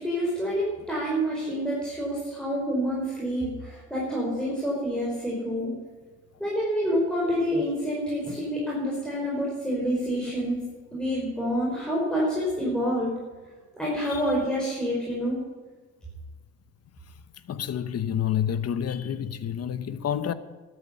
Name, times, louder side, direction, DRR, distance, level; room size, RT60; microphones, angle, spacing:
voice 1, 0.0-5.7 6.4-10.6 10.9-13.1 13.7-15.4, equal, 5° left, 5.2 m, -27 dB
voice 2, 17.5-20.3, left 9 dB, 55° left, 1.0 m, -28 dB
12.5 x 9.5 x 8.4 m
cardioid pair, 90°, 30 cm